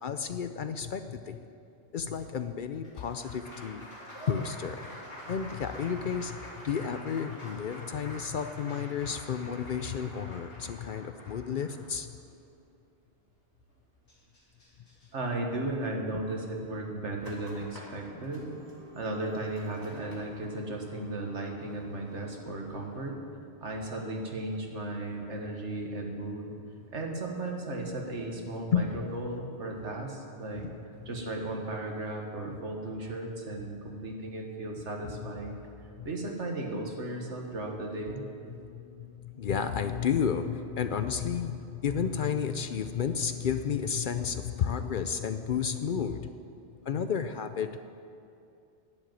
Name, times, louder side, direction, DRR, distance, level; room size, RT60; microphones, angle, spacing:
voice 1, 0.0-1.4 1.9-3.9 4.3-4.9 5.3-12.2 28.7-29.3 30.5-30.7 31.0-31.1 35.5-35.6 36.0-36.1 38.5-46.3 46.9-47.8, left 7 dB, 55° left, 9 dB, 0.6 m, -32 dB
Applause, 2.0-12.3 13.7-13.8 14.1-15.1, equal, 90° left, 3.3 m, -46 dB
voice 2, 15.1-18.5 19.0-23.2 23.6-26.5 26.9-30.6 31.1-35.6 36.1-38.2, right 2 dB, 90° right, 1 dB, 1.9 m, -35 dB
sound 1, 17.2-22.9, equal, 20° left, 2.2 m, -51 dB
10.5 x 7.9 x 9.2 m, 2.6 s
omnidirectional pair, 1.2 m